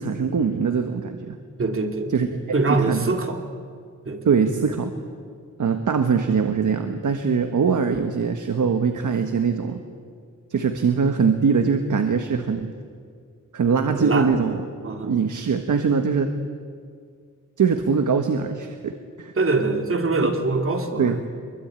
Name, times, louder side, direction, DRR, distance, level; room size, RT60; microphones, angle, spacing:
voice 1, 0.0-1.4 2.1-2.3 2.7-3.1 4.2-4.9 5.6-9.8 10.5-12.7 13.5-14.7 15.0-16.3 17.6-18.9 19.2-19.3 21.0-21.2, right 5 dB, 70° right, 6 dB, 1.5 m, -22 dB
voice 2, 1.6-3.4 4.0-4.4 14.0-14.4 14.8-15.1 19.4-21.2, right 3 dB, 40° right, 4 dB, 2.8 m, -24 dB
24.0 x 23.0 x 9.0 m, 2.1 s
wide cardioid pair, 120°, 32 cm